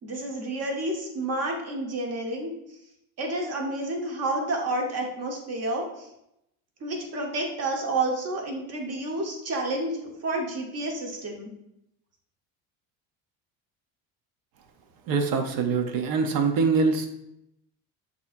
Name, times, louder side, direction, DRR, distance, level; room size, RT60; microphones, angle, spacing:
voice 1, 0.0-2.5 3.2-6.1 6.8-11.5, right 2 dB, 40° right, 1 dB, 1.2 m, -30 dB
voice 2, 15.1-17.1, right 4 dB, 65° right, 6 dB, 0.8 m, -24 dB
6.8 x 2.9 x 2.5 m, 0.81 s
cardioid pair, 120°, 37 cm